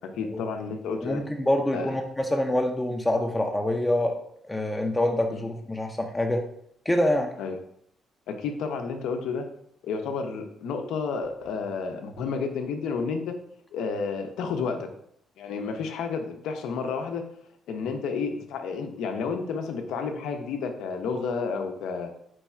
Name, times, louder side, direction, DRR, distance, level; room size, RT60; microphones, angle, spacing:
voice 1, 0.2-1.2 1.7-1.9 5.3-5.4 7.4-7.6 8.3-9.5 9.8-13.3 13.7-14.9 15.4-17.2 17.7-22.1, left 5 dB, 85° left, 5 dB, 0.5 m, -31 dB
voice 2, 1.0-4.2 4.4-6.4 6.9-7.3, left 1 dB, 15° left, 3 dB, 0.5 m, -26 dB
4.6 x 2.3 x 4.2 m, 0.69 s
cardioid pair, 90°, 0 cm